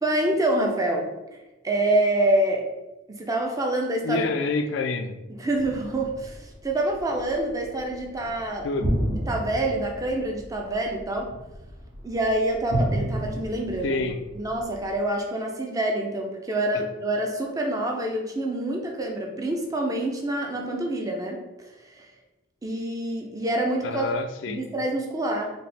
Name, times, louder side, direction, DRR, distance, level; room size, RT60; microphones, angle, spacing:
voice 1, 0.0-2.6 3.1-4.3 5.3-11.3 12.0-14.0 14.3-22.1 22.6-24.1 24.5-25.5, right 1 dB, 15° right, 1 dB, 0.5 m, -27 dB
voice 2, 4.0-5.2 8.6-8.9 13.8-14.2 16.7-16.8 23.8-24.6, left 3 dB, 60° left, 7 dB, 0.3 m, -27 dB
sound 1, 5.5-15.0, equal, 70° right, 1.5 m, -32 dB
4.4 x 3.0 x 3.3 m, 1.1 s
head